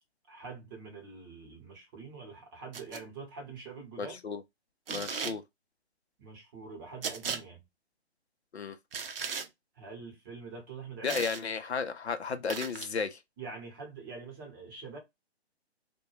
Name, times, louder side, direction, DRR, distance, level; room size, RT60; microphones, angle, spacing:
voice 1, 0.3-4.2 6.2-7.6 9.8-11.2 13.4-15.0, right 4 dB, 20° right, 0.8 m, -45 dB
sound 1, 2.7-3.0 4.9-5.4 7.0-7.4 8.9-9.5 11.1-11.4 12.5-12.9, right 6 dB, 60° right, 0.5 m, -36 dB
voice 2, 4.0-4.4 4.9-5.4 8.5-8.8 11.0-13.2, left 5 dB, 75° left, 0.5 m, -33 dB
2.2 x 2.1 x 3.0 m
figure-of-eight pair, 130°, 33 cm